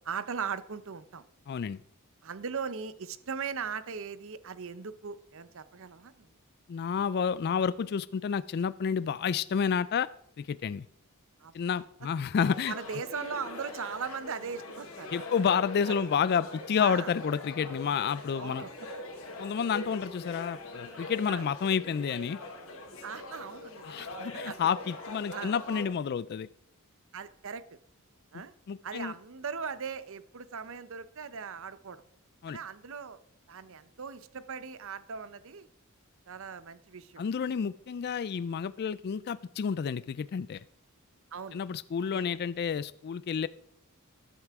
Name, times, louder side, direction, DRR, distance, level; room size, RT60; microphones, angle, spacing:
voice 1, 0.0-1.2 2.2-6.3 11.4-11.8 12.7-15.4 15.8-16.1 16.8-17.1 18.4-18.7 19.7-19.9 21.3-21.4 23.0-24.1 24.4-24.6 25.3-25.5 27.1-27.6 28.3-28.5 28.8-32.0 32.5-33.2 33.5-35.7 36.3-37.2 41.3-41.6 42.1-42.2, right 6 dB, 60° right, 14 dB, 0.7 m, -39 dB
voice 2, 1.5-1.8 6.7-10.1 10.4-10.9 11.5-12.7 15.1-18.7 19.4-22.4 23.8-26.5 28.7-29.1 32.4-32.6 37.2-40.6 41.5-43.5, left 7 dB, 45° left, 16 dB, 0.3 m, -30 dB
sound 1, 12.4-25.8, left 2 dB, 65° left, 2.6 m, -43 dB
13.0 x 11.0 x 3.6 m, 0.72 s
head